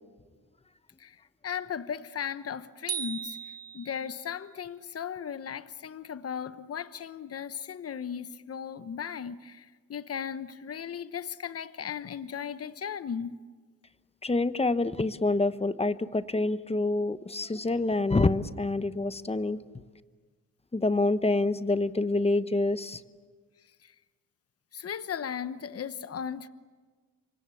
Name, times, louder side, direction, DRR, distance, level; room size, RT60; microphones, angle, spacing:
voice 1, 1.0-13.4 23.8-23.9 24.7-26.5, left 7 dB, 50° left, 1.1 m, -37 dB
sound 1, 2.9-4.3, right 8 dB, 50° right, 1.4 m, -37 dB
voice 2, 14.2-19.6 20.7-23.0, left 2 dB, 20° left, 1.0 m, -27 dB
28.5 x 24.5 x 8.5 m
cardioid pair, 80°, 32 cm